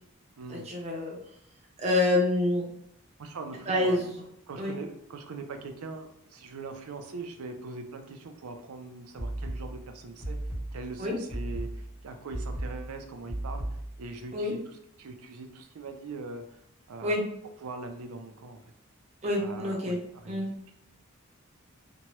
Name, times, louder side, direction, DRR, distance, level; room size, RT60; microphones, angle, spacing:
voice 1, 0.5-1.2 1.8-2.7 3.7-4.1 4.6-4.7 11.0-11.1 14.3-14.5 17.0-17.2 19.2-20.0 20.3-20.5, left 1 dB, 30° right, -2 dB, 0.6 m, -27 dB
voice 2, 3.2-4.0 4.5-10.4 10.7-13.7 14.0-14.6 15.0-16.4 16.9-17.1 17.6-18.6 19.4-20.4, right 3 dB, 85° right, 6 dB, 0.4 m, -41 dB
Heartbeat Drum Sound, 9.2-14.1, right 1 dB, 40° left, 1.1 m, -36 dB
2.9 x 2.2 x 2.9 m, 0.75 s
head